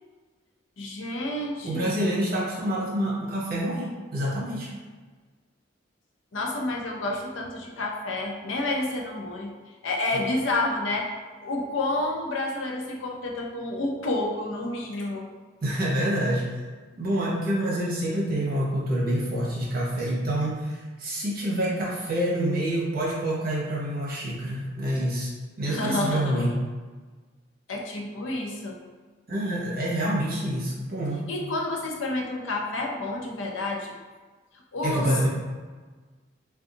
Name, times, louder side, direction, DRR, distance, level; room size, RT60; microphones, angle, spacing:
voice 1, 0.8-2.1 6.3-9.5 9.8-11.1 11.4-15.3 25.7-26.6 27.7-28.8 31.3-33.9 34.7-35.2, left 2 dB, 85° left, 0 dB, 0.6 m, -29 dB
voice 2, 1.6-4.7 15.6-16.6 17.0-25.3 25.6-26.5 29.3-31.2 34.8-35.3, right 1 dB, 50° right, -5 dB, 0.9 m, -27 dB
2.6 x 2.3 x 3.7 m, 1.4 s
head